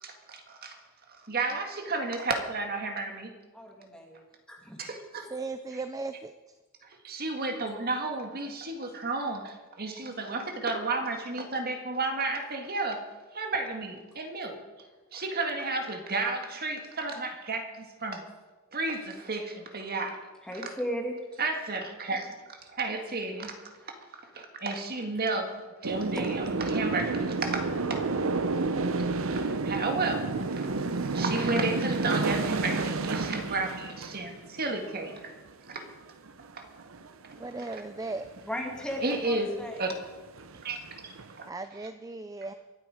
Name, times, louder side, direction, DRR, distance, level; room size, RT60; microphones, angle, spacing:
voice 1, 0.0-0.8 1.2-3.3 4.8-5.3 7.0-13.0 13.3-14.6 15.1-18.2 18.7-20.2 21.4-23.5 24.3-25.5 25.8-28.0 29.3-30.7 31.1-35.3 35.7-35.8 36.5-36.6 37.7-37.8 39.0-39.5 39.8-39.9 40.6-40.8 41.0-41.1 41.4-41.5, right 3 dB, 45° right, 4 dB, 1.9 m, -32 dB
voice 2, 3.5-4.8 20.4-21.2 24.2-24.3 38.0-38.1 38.5-39.9, equal, 5° left, 0 dB, 2.4 m, -36 dB
voice 3, 5.3-6.3 37.4-38.3 41.4-42.5, right 3 dB, 15° right, 10 dB, 0.5 m, -37 dB
sound 1, 25.8-35.3 35.7-35.9 36.3-36.5 36.8-37.5 38.2-38.4 38.7-39.3 39.8-39.9 40.0-41.4, right 3 dB, 70° right, 0.8 m, -30 dB
24.0 x 8.3 x 5.0 m, 1.2 s
head